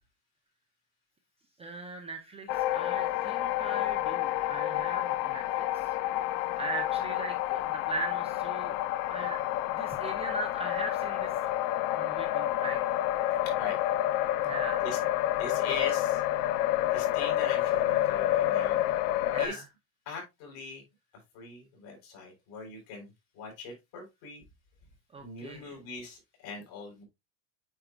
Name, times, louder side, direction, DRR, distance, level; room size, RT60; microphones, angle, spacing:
voice 1, 1.6-6.0 6.6-8.8 9.0-9.4 9.8-11.6 11.9-12.8 14.4-14.8 19.3-19.7 25.1-25.8, right 2 dB, 15° right, 3 dB, 0.5 m, -39 dB
sound 1, 2.5-19.5, left 14 dB, 80° left, 0.7 m, -29 dB
voice 2, 15.4-16.2 16.9-18.8 19.4-19.6 20.1-20.8 21.3-24.4 25.2-27.0, left 4 dB, 60° left, 1 dB, 4.2 m, -40 dB
8.8 x 4.6 x 2.3 m, 0.20 s
cardioid pair, 160°, 47 cm